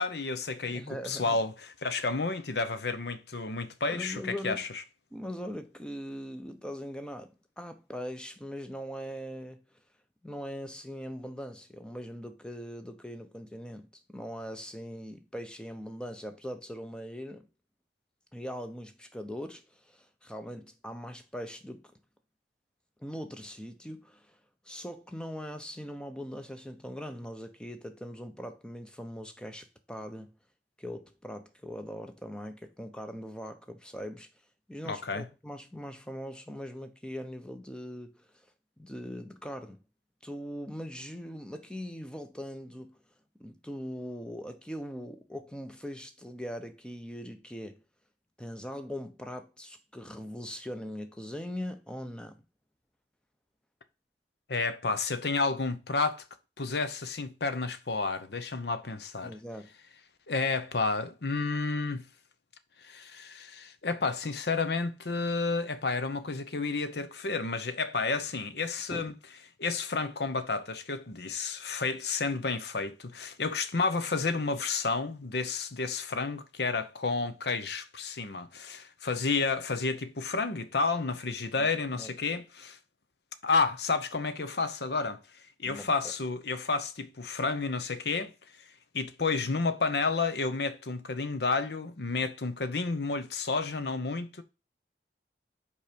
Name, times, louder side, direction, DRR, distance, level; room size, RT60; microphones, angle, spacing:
voice 1, 0.0-4.7 34.8-35.2 54.5-56.2 56.6-59.3 60.3-62.0 62.8-69.1 69.6-82.8 83.4-85.2 85.6-88.3 88.9-94.4, left 4 dB, 70° left, 0.8 m, -31 dB
voice 2, 0.7-1.4 3.9-4.6 5.1-9.6 10.2-17.5 18.3-21.8 23.0-24.4 24.6-30.3 30.8-34.3 34.7-38.5 38.8-39.8 40.2-43.0 43.4-47.8 48.4-52.4 59.2-59.7 68.9-69.1 81.6-81.7 81.9-82.1 85.6-85.9, equal, 5° left, 0.8 m, -41 dB
5.4 x 4.9 x 5.1 m
head